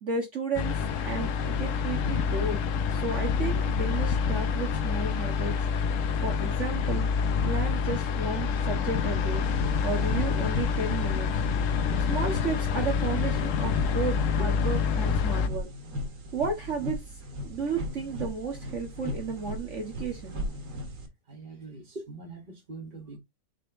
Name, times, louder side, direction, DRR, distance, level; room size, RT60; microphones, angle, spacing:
voice 1, 0.0-2.6 2.9-5.6 6.2-7.1 7.4-9.4 9.8-11.4 12.1-15.7 16.3-17.0 17.4-20.4, right 4 dB, 50° right, 1.9 m, -33 dB
sound 1, 0.6-15.5, left 6 dB, 65° left, 0.9 m, -27 dB
sound 2, 9.4-21.1, left 1 dB, 85° right, 2.2 m, -38 dB
voice 2, 21.3-23.2, right 3 dB, 30° right, 2.1 m, -42 dB
6.6 x 3.8 x 3.7 m
omnidirectional pair, 1.7 m